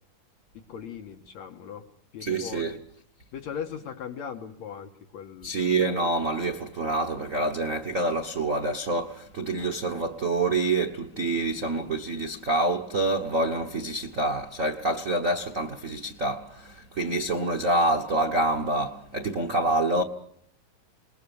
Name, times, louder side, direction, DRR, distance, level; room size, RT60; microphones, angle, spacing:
voice 1, 0.5-1.9 2.1-2.8 3.3-5.5, left 7 dB, 65° left, 2.4 m, -38 dB
voice 2, 2.2-2.8 5.4-20.0, right 2 dB, 70° right, 0.7 m, -27 dB
28.5 x 20.0 x 7.1 m
omnidirectional pair, 3.7 m